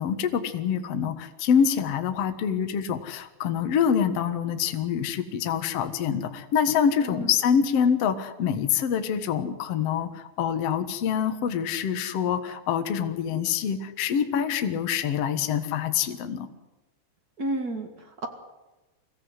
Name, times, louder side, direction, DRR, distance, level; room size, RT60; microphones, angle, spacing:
voice 1, 0.0-16.5, left 8 dB, 75° left, 8 dB, 1.4 m, -25 dB
voice 2, 7.0-7.3 17.4-18.3, right 1 dB, 80° right, 4 dB, 0.8 m, -31 dB
24.0 x 16.5 x 9.8 m, 1.1 s
omnidirectional pair, 5.3 m